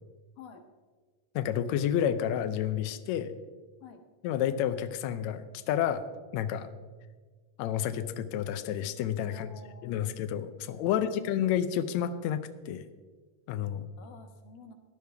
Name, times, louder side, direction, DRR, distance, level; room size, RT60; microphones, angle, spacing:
voice 1, 1.3-3.3 4.2-6.0 6.3-6.7 7.6-9.5 9.8-12.8 13.5-13.9, left 10 dB, 85° left, 9 dB, 1.6 m, -30 dB
voice 2, 9.2-10.1 10.8-11.2 14.0-14.7, left 5 dB, 70° left, 5 dB, 2.7 m, -50 dB
17.5 x 11.0 x 3.5 m, 1.4 s
omnidirectional pair, 4.1 m